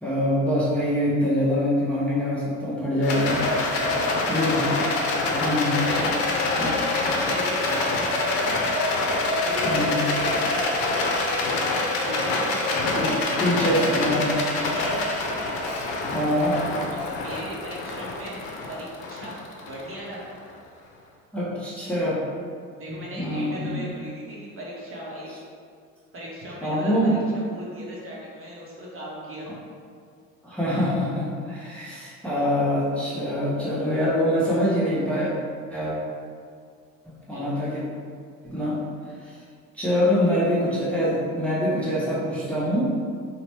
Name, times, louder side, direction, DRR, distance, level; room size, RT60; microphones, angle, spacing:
voice 1, 0.0-3.5 4.3-4.8 5.4-5.8 6.6-6.7 9.6-10.0 13.0-14.3 16.1-16.6 21.3-22.2 22.9-23.9 26.6-27.2 30.4-35.3 35.7-36.0 37.0-37.8 38.4-38.8 39.2-39.4 39.7-42.8, equal, 5° left, -9 dB, 0.8 m, -24 dB
Rattle, 3.0-20.4, left 2 dB, 65° left, 0.6 m, -25 dB
voice 2, 3.4-4.5 5.3-8.5 9.3-11.0 12.1-12.6 14.3-15.0 16.9-18.4 18.7-19.4 19.7-20.2 22.8-25.3 26.1-29.5 37.3-37.6, equal, 35° right, -5 dB, 0.9 m, -38 dB
2.9 x 2.2 x 3.0 m, 2.1 s
hypercardioid pair, 65°, 39 cm